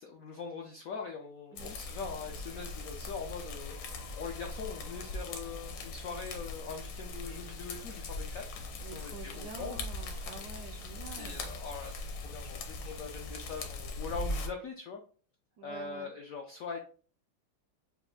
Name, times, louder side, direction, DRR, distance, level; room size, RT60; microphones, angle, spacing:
voice 1, 0.0-3.7 4.2-8.6 8.9-9.8 11.2-15.0 15.6-16.8, left 5 dB, 85° left, 2 dB, 0.7 m, -42 dB
sound 1, 1.6-14.5, left 2 dB, 65° left, 1.4 m, -40 dB
voice 2, 8.8-11.6 15.6-16.1, right 5 dB, 75° right, 7 dB, 0.9 m, -47 dB
6.1 x 2.4 x 3.4 m, 0.40 s
omnidirectional pair, 2.3 m